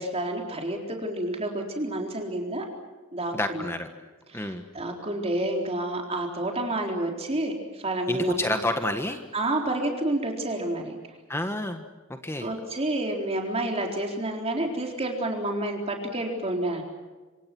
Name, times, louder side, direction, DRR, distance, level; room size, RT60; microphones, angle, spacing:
voice 1, 0.0-2.7 3.1-3.7 4.3-8.6 9.3-11.0 12.4-16.8, right 1 dB, 30° right, 2 dB, 4.1 m, -29 dB
voice 2, 3.3-3.9 4.3-4.6 8.1-9.2 11.3-11.8 12.1-12.5, left 1 dB, 15° left, 6 dB, 1.4 m, -29 dB
26.5 x 26.5 x 6.1 m, 1.3 s
head